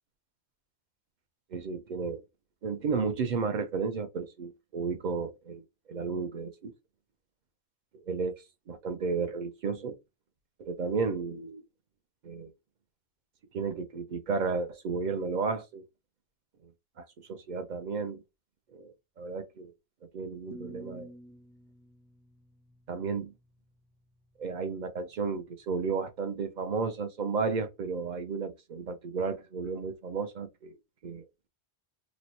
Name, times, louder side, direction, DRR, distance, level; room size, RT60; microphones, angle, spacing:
voice 1, 1.5-2.2 2.6-6.7 8.1-8.3 8.7-10.0 10.6-11.6 12.2-12.5 13.5-15.9 17.0-18.2 18.7-19.7 20.1-21.1 22.9-23.3 24.4-30.7 31.0-31.2, right 5 dB, 60° right, 0.5 m, -33 dB
sound 1, 20.5-23.5, right 1 dB, 5° left, 0.5 m, -50 dB
3.0 x 2.1 x 4.0 m
omnidirectional pair, 1.1 m